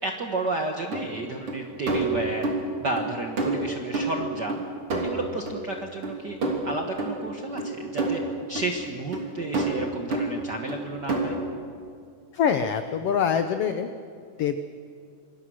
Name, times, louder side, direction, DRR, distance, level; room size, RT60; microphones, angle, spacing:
voice 1, 0.0-2.5 2.8-4.6 5.0-6.4 6.6-8.2 8.5-11.4, right 2 dB, 60° right, 3 dB, 1.1 m, -32 dB
sound 1, 0.9-1.0 1.5-1.6 1.9-2.6 3.0-3.1 3.4-4.6 4.9-5.6 6.0-6.1 6.4-6.7 7.0-7.1 7.6-8.2 8.5-8.7 9.1-9.2 9.5-9.8 10.1-10.3 10.7-10.8 11.1-11.4, right 3 dB, 40° right, 3.8 m, -27 dB
voice 2, 12.3-13.9 14.4-14.6, left 7 dB, 85° left, 9 dB, 1.3 m, -24 dB
26.5 x 21.0 x 6.3 m, 2.3 s
omnidirectional pair, 3.9 m